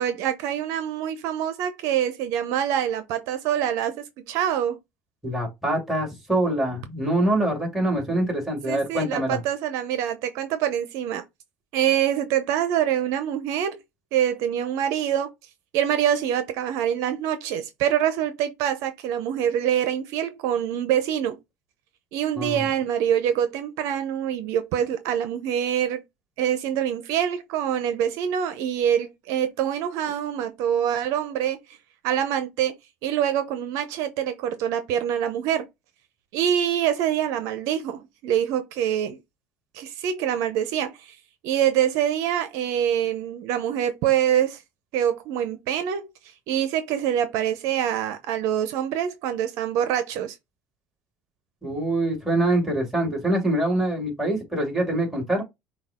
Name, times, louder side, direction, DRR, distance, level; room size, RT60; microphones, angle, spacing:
voice 1, 0.0-4.8 8.7-11.2 11.7-13.8 14.1-15.3 15.7-21.4 22.1-26.0 26.4-31.8 32.0-32.7 33.0-35.7 36.3-39.2 39.7-41.2 41.4-44.6 44.9-46.1 46.5-50.4, right 10 dB, 70° right, 0.7 m, -25 dB
voice 2, 5.2-9.4 22.4-22.6 51.6-55.4, right 1 dB, 5° right, 2.4 m, -24 dB
5.7 x 2.4 x 3.5 m
supercardioid pair, 110°, 5 cm